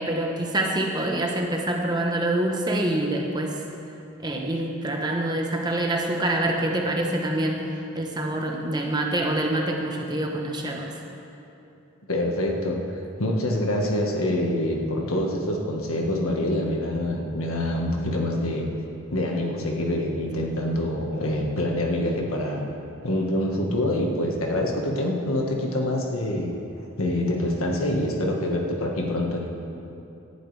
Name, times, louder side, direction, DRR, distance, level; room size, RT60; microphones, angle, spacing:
voice 1, 0.0-3.6 4.2-7.7 7.9-10.9, right 1 dB, 20° right, 1 dB, 1.0 m, -26 dB
voice 2, 12.1-12.8 13.2-18.7 19.1-22.6 23.0-26.5 27.0-29.5, left 1 dB, 80° left, 1 dB, 1.6 m, -25 dB
18.0 x 11.5 x 3.4 m, 2.8 s
head